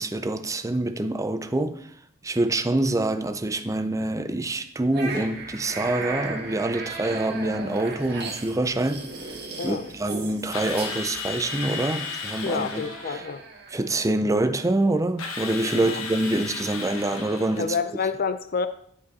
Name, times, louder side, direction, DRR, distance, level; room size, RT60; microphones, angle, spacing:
voice 1, 0.0-1.9 2.2-9.4 9.6-13.2 13.7-17.8, right 2 dB, 15° right, 0.5 m, -26 dB
sound 1, 4.9-14.1, right 3 dB, 55° right, 1.8 m, -37 dB
Drill, 10.5-13.2 15.2-17.7, left 5 dB, 90° left, 1.2 m, -34 dB
voice 2, 12.4-13.4 15.7-16.0 17.6-18.7, left 5 dB, 45° left, 0.5 m, -28 dB
11.5 x 5.1 x 4.1 m
head